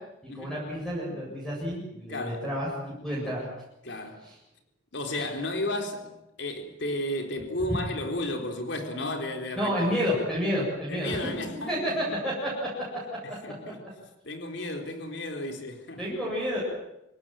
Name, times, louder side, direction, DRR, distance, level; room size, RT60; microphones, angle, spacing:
voice 1, 0.3-3.4 4.2-4.3 5.1-5.2 9.6-11.2 11.5-12.7 16.0-16.6, equal, 5° left, 7.9 m, -30 dB
voice 2, 2.0-2.4 3.8-4.2 4.9-10.1 10.9-12.1 13.2-13.8 14.2-16.1, left 1 dB, 60° left, 4.0 m, -33 dB
26.0 x 18.5 x 9.1 m
head